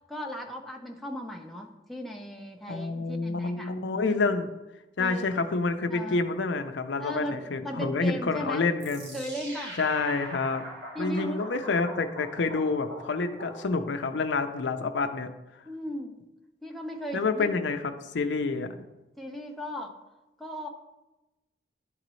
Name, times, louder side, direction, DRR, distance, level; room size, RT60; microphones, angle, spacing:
voice 1, 0.1-3.7 4.0-4.2 5.0-5.3 5.9-6.2 7.0-8.7 9.1-9.8 10.9-11.5 15.6-16.2 16.6-17.6 19.2-20.0 20.4-20.7, equal, ahead, 0 dB, 0.6 m, -37 dB
voice 2, 2.7-4.5 5.0-9.2 9.8-10.6 11.0-15.3 17.1-18.7, left 3 dB, 80° left, 7 dB, 0.5 m, -28 dB
sound 1, 8.8-14.1, equal, 75° right, 1.3 m, -42 dB
11.0 x 3.9 x 3.1 m, 1.0 s
head